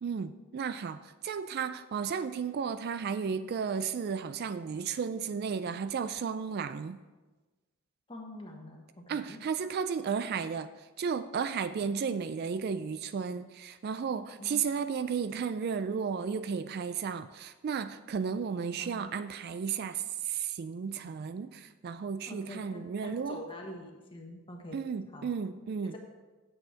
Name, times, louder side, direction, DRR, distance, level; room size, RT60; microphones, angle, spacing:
voice 1, 0.0-7.0 9.1-23.4 24.7-25.9, right 6 dB, 45° right, 12 dB, 0.3 m, -34 dB
voice 2, 8.1-9.4 11.8-12.1 14.4-14.6 18.8-19.2 22.3-24.8 25.1-25.3 25.8-26.0, left 1 dB, 25° left, 1 dB, 1.3 m, -45 dB
8.8 x 7.6 x 4.5 m, 1.2 s
head